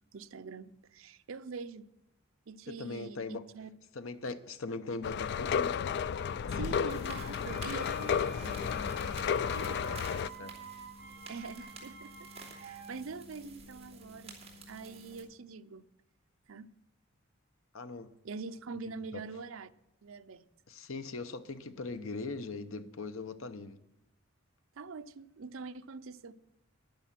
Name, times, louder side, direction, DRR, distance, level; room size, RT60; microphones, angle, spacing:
voice 1, 0.1-1.9 2.5-3.7 6.5-10.1 11.3-14.4 14.7-15.9 16.5-16.7 18.2-19.7 20.0-20.4 24.8-26.3, right 4 dB, 80° right, 0.6 m, -44 dB
voice 2, 2.7-3.4 3.9-5.8 9.5-10.6 17.7-18.1 18.9-19.2 20.7-23.8, left 3 dB, 90° left, 0.8 m, -41 dB
sound 1, 5.0-10.3, left 7 dB, 55° left, 0.3 m, -32 dB
sound 2, 6.9-15.2, right 2 dB, 30° right, 2.8 m, -50 dB
sound 3, 7.4-12.9, right 5 dB, 50° right, 1.9 m, -49 dB
11.0 x 10.5 x 5.9 m
head